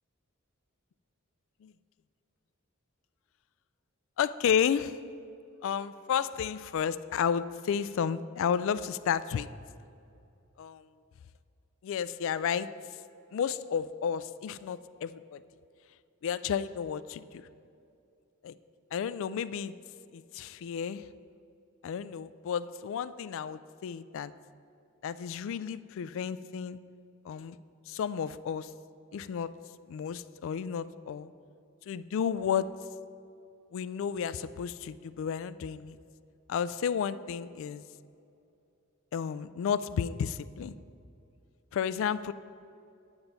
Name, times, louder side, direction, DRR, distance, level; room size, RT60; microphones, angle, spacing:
voice 1, 4.2-5.0 5.6-9.5 10.6-10.9 11.8-12.7 13.3-15.4 16.2-17.5 18.4-18.6 18.9-19.7 20.1-21.1 21.8-24.3 25.0-26.8 27.2-27.6 27.9-28.7 29.1-29.5 29.9-31.3 31.9-32.7 33.7-36.0 36.5-37.8 39.1-40.7 41.7-42.3, left 7 dB, 65° left, 15 dB, 0.3 m, -32 dB
9.0 x 8.7 x 4.0 m, 2.6 s
head